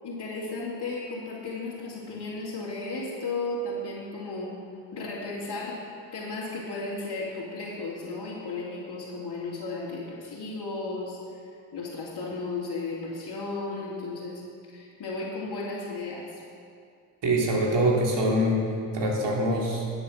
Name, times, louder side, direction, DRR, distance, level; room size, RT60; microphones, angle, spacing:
voice 1, 0.0-4.6 4.9-5.8 6.1-11.2 11.7-14.4 14.7-16.2, left 3 dB, 55° left, -9 dB, 3.0 m, -34 dB
voice 2, 17.2-18.6 18.9-19.8, right 1 dB, 60° right, -2 dB, 3.1 m, -24 dB
11.5 x 7.9 x 6.6 m, 2.4 s
hypercardioid pair, 50°, 47 cm